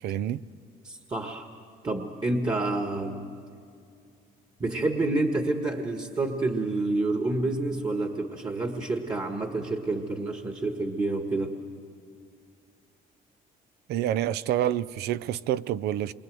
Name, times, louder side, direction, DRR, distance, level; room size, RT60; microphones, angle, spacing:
voice 1, 0.0-0.4 13.9-16.1, right 11 dB, 75° right, 0.6 m, -28 dB
voice 2, 0.8-1.5 1.8-3.3 4.6-11.5, right 2 dB, 25° right, 1.6 m, -28 dB
28.0 x 23.5 x 7.7 m
cardioid pair, 110°, 17 cm